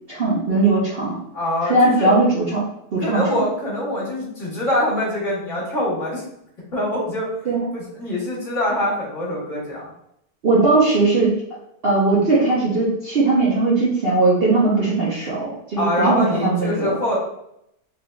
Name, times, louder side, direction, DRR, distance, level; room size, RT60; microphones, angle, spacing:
voice 1, 0.1-1.2 1.6-2.6 2.9-3.5 7.5-7.7 10.4-11.3 11.8-16.9, right 3 dB, 50° right, -6 dB, 0.7 m, -19 dB
voice 2, 1.3-2.1 3.0-6.2 6.7-7.3 7.7-9.9 15.8-17.2, left 1 dB, 50° left, -5 dB, 1.6 m, -24 dB
3.7 x 3.7 x 2.2 m, 0.78 s
omnidirectional pair, 1.7 m